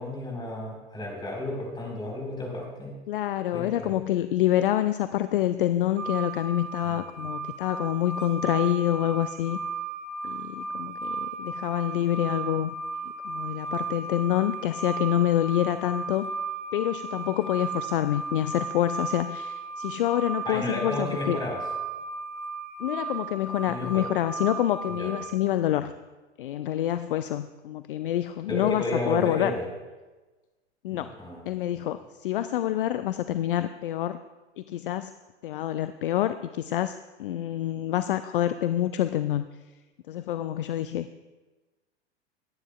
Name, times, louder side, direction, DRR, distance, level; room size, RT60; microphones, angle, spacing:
voice 1, 0.0-3.0 3.5-3.9 6.9-7.0 20.5-21.6 23.7-24.0 25.0-25.1 28.5-29.6 30.9-31.8, left 1 dB, 15° left, -2 dB, 4.3 m, -32 dB
voice 2, 3.1-9.6 10.2-12.8 13.2-16.3 16.7-21.4 22.8-25.9 26.4-29.5 30.8-31.1 31.5-34.2 34.6-35.1 35.4-39.5 40.1-41.1, left 12 dB, 55° left, 12 dB, 0.4 m, -27 dB
sound 1, 6.0-25.4, right 4 dB, 90° right, 1.3 m, -35 dB
21.5 x 9.7 x 2.3 m, 1.2 s
figure-of-eight pair, 95°, 34 cm